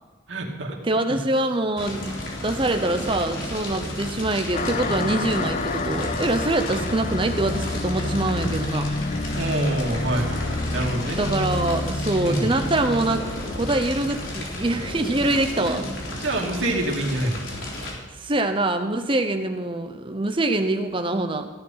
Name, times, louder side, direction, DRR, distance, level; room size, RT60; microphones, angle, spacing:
voice 1, 0.3-0.8 9.3-11.2 12.2-12.5 15.5-15.8 16.1-17.4, right 1 dB, 70° right, 0 dB, 2.6 m, -27 dB
voice 2, 0.8-2.0 2.3-8.9 11.2-15.9 18.1-21.5, right 2 dB, 25° right, 7 dB, 0.8 m, -24 dB
Fire, 1.8-17.9, left 1 dB, 90° left, 3.7 m, -33 dB
sound 1, 4.5-15.5, left 2 dB, 40° left, 0.6 m, -30 dB
sound 2, 4.6-5.1 5.4-6.3 6.6-7.6 8.2-9.4 9.8-10.0 10.3-10.4 10.9-11.3 12.2-12.6, equal, 20° left, 1.8 m, -40 dB
16.0 x 11.0 x 5.8 m, 1.3 s
head